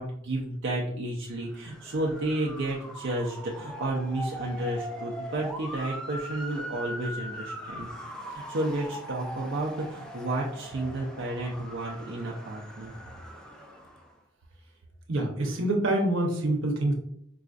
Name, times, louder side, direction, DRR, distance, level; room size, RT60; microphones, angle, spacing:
voice 1, 0.0-7.9 8.3-12.9, right 1 dB, 65° right, -3 dB, 0.5 m, -32 dB
Motor vehicle (road) / Siren, 1.4-14.1, equal, 5° left, 0.4 m, -41 dB
voice 2, 15.1-16.9, right 1 dB, 80° right, 2 dB, 0.8 m, -26 dB
4.7 x 2.4 x 2.4 m, 0.71 s
head